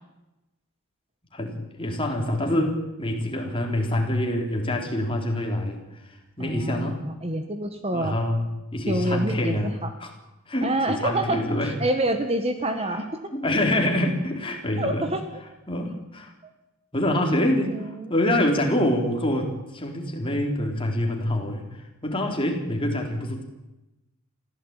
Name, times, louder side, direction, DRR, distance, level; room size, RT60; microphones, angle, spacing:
voice 1, 1.3-7.0 7.9-10.1 10.5-11.7 13.3-15.1 15.7-16.3 16.9-23.4, left 1 dB, 25° left, 2 dB, 4.1 m, -26 dB
voice 2, 6.4-8.2 8.9-9.9 10.6-13.1 14.8-15.2 16.4-16.5 17.7-18.1, right 1 dB, 25° right, 7 dB, 1.7 m, -27 dB
24.0 x 16.0 x 9.1 m, 0.99 s
head